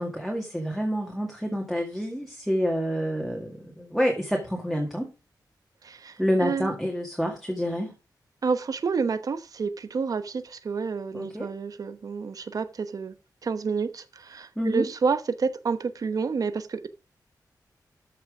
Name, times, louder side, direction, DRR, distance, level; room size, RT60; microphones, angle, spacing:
voice 1, 0.0-5.1 6.2-7.9 11.1-11.5 14.6-14.9, equal, ahead, 1.9 m, -28 dB
voice 2, 5.8-6.7 8.4-13.1 13.4-16.9, right 5 dB, 55° right, 1.0 m, -29 dB
13.0 x 5.9 x 4.9 m
wide cardioid pair, 160°, 7 cm